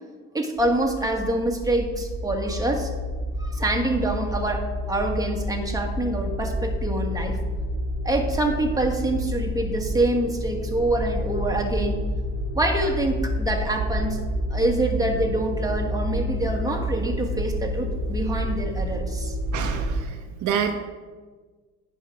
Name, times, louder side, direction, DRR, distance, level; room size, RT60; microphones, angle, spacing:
voice 1, 0.3-2.9 3.4-7.4 8.0-12.0 12.5-14.2 14.5-19.4, right 1 dB, 10° right, 2 dB, 1.4 m, -26 dB
sound 1, 0.6-20.0, equal, 35° right, 1.2 m, -29 dB
voice 2, 19.5-20.8, right 7 dB, 75° right, 6 dB, 0.9 m, -27 dB
9.8 x 5.5 x 4.8 m, 1.4 s
cardioid pair, 90°, 30 cm